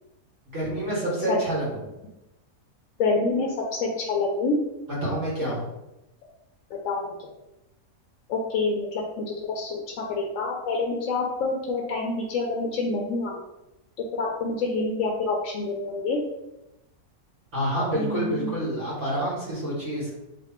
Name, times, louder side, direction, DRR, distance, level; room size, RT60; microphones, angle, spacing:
voice 1, 0.5-1.8 5.0-5.6 17.5-20.1, right 1 dB, 55° right, -7 dB, 1.5 m, -27 dB
voice 2, 3.0-4.6 6.8-7.1 8.3-9.8 10.1-13.3 14.1-16.2 17.9-18.5, left 3 dB, 70° left, -1 dB, 0.9 m, -27 dB
3.3 x 2.5 x 4.2 m, 0.95 s
omnidirectional pair, 1.6 m